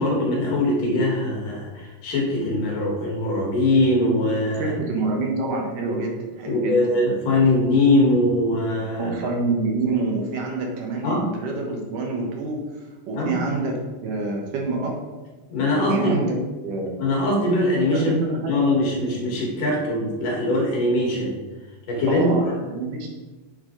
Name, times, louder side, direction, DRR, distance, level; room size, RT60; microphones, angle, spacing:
voice 1, 0.0-4.8 5.8-6.0 6.5-9.2 11.0-11.3 13.1-13.4 15.5-16.1 17.0-18.1 18.5-21.4 21.9-22.5, left 1 dB, 65° left, -2 dB, 3.5 m, -22 dB
voice 2, 4.5-6.9 9.0-12.6 13.1-15.0 15.9-16.9 17.9-18.6 22.1-23.1, right 3 dB, 70° right, 1 dB, 2.7 m, -27 dB
8.5 x 7.3 x 3.9 m, 1.2 s
omnidirectional pair, 4.1 m